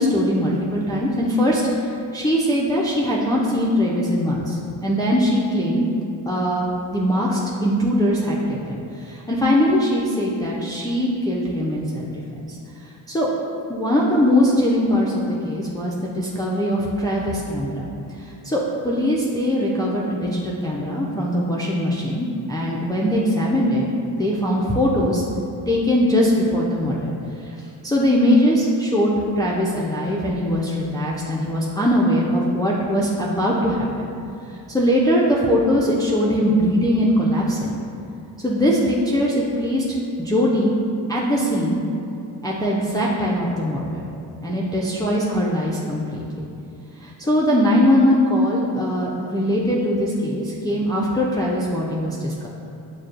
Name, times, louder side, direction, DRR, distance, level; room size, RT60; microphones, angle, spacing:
voice 1, 0.0-5.9 6.3-12.1 12.5-12.6 13.1-13.3 13.7-17.9 18.2-23.9 24.2-25.2 25.7-27.1 27.4-27.5 27.8-34.1 34.7-37.8 38.4-39.9 40.2-40.8 41.1-41.8 42.4-44.1 44.4-46.5 47.0-52.5, equal, 10° left, -6 dB, 0.4 m, -21 dB
6.3 x 2.2 x 2.4 m, 2.6 s
cardioid pair, 65°, 44 cm